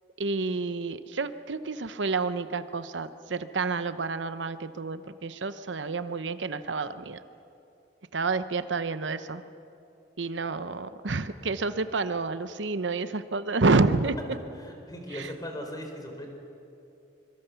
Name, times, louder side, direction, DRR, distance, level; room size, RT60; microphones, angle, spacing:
voice 1, 0.2-7.2 8.1-9.4 10.2-14.2 15.1-15.3, right 3 dB, 80° right, 12 dB, 0.9 m, -29 dB
voice 2, 14.6-16.3, equal, 20° left, 4 dB, 3.8 m, -38 dB
25.0 x 23.0 x 6.9 m, 2.7 s
head